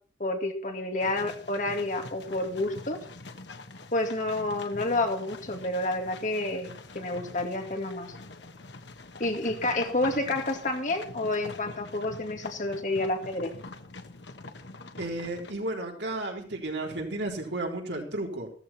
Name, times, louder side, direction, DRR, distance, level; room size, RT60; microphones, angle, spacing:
voice 1, 0.2-3.0 3.9-8.1 9.2-13.5, left 2 dB, 45° left, 4 dB, 2.3 m, -29 dB
sound 1, 1.0-15.5, left 3 dB, 65° left, 1.3 m, -44 dB
voice 2, 15.0-18.5, right 2 dB, 70° right, 1 dB, 3.9 m, -33 dB
15.0 x 14.0 x 4.4 m, 0.43 s
head